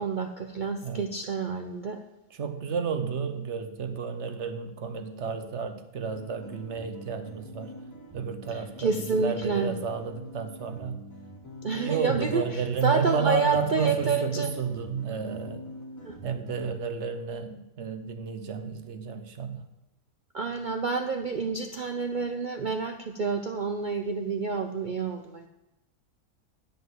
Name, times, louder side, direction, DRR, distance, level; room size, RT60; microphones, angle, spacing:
voice 1, 0.0-2.0 8.5-9.8 11.6-14.5 16.0-16.2 20.3-25.5, right 4 dB, 85° right, 6 dB, 0.4 m, -29 dB
voice 2, 2.4-7.7 8.1-11.0 11.7-15.7 16.2-19.6, right 6 dB, 55° right, 9 dB, 1.0 m, -31 dB
sound 1, 6.1-16.7, equal, 10° left, 1.7 m, -45 dB
10.0 x 5.2 x 7.7 m, 0.94 s
omnidirectional pair, 1.7 m